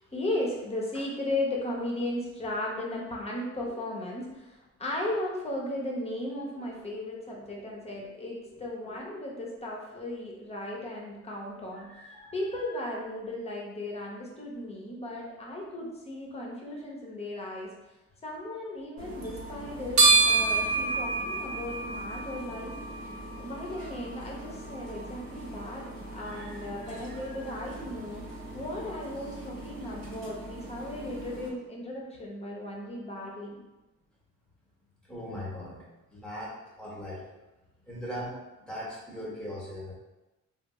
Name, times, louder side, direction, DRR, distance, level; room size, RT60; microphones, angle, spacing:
voice 1, 0.1-11.9 12.3-17.7 18.2-22.8 23.4-28.2 28.5-33.6, left 1 dB, 20° left, -2 dB, 0.8 m, -36 dB
voice 2, 7.5-7.9 8.8-9.0 11.8-12.7 26.2-26.5 26.8-27.7 29.7-30.0 30.8-31.0 35.0-37.2 37.9-38.3 38.7-39.9, equal, 5° left, -5 dB, 1.1 m, -41 dB
sound 1, 19.0-31.5, right 3 dB, 55° right, 1.2 m, -31 dB
3.3 x 2.1 x 3.0 m, 1.0 s
cardioid pair, 90°, 30 cm